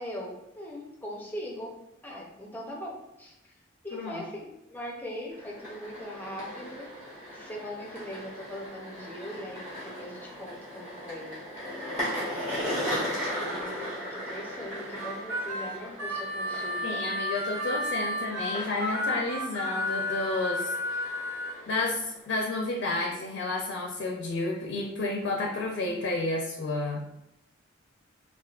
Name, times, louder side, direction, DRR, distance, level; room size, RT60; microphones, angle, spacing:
voice 1, 0.0-1.7 2.0-3.3 3.8-6.9 7.3-9.6 10.0-11.4 12.1-17.0, equal, 10° left, -2 dB, 0.5 m, -40 dB
voice 2, 3.9-4.3 16.8-21.2 21.7-27.0, left 2 dB, 65° left, 0 dB, 0.4 m, -31 dB
sound 1, 5.3-22.3, equal, 35° right, 1.3 m, -38 dB
Harmonica, 15.0-21.5, left 1 dB, 85° right, 0.7 m, -32 dB
3.5 x 2.4 x 2.4 m, 0.87 s
head